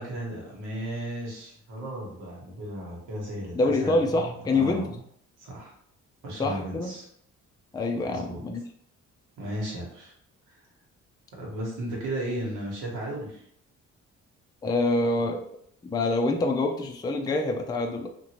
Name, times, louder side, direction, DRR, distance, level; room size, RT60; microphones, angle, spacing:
voice 1, 0.0-4.9 5.4-5.7 6.2-7.1 8.0-8.4 9.4-10.1 10.5-10.6 11.3-13.4, right 1 dB, 90° right, -4 dB, 1.4 m, -35 dB
voice 2, 3.5-4.8 6.4-6.9 7.7-8.6 14.6-15.5 15.8-18.1, left 2 dB, 15° left, 3 dB, 0.4 m, -26 dB
2.8 x 2.5 x 2.9 m, 0.66 s
cardioid pair, 90°, 30 cm